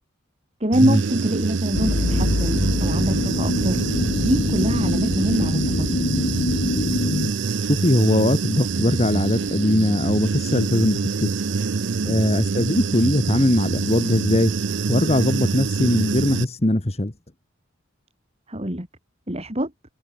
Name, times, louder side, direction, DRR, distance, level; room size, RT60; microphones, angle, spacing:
voice 1, 0.6-3.8 4.2-6.1 12.0-12.2 18.5-18.9 19.3-19.7, equal, 30° right, 4.0 m, -25 dB
Human voice / Buzz, 0.7-16.4, right 4 dB, 60° right, 0.6 m, -25 dB
sound 1, 1.7-7.3, left 2 dB, 55° left, 0.8 m, -24 dB
voice 2, 7.6-11.3 12.0-14.5 14.9-17.1, left 1 dB, 30° left, 1.4 m, -20 dB
head